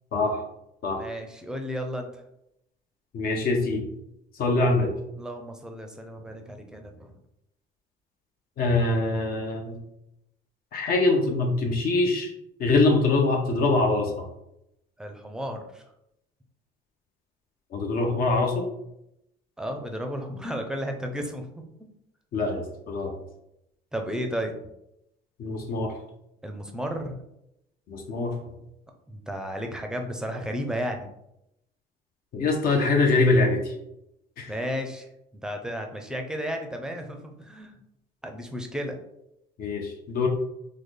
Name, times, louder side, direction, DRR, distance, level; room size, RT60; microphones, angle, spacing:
voice 1, 1.0-2.2 5.2-7.1 15.0-15.8 19.6-21.4 23.9-24.5 26.4-27.2 29.1-31.1 34.5-35.1 35.4-37.8 38.2-39.0, equal, 5° right, 4 dB, 0.5 m, -33 dB
voice 2, 3.1-3.9 4.4-4.9 8.6-9.8 10.7-12.3 12.6-14.3 17.7-18.7 22.3-23.2 25.4-25.9 27.9-28.3 32.3-33.7 34.4-34.5 39.6-40.3, left 3 dB, 60° left, 2 dB, 0.6 m, -24 dB
3.7 x 2.0 x 3.2 m, 0.81 s
cardioid pair, 110°, 17 cm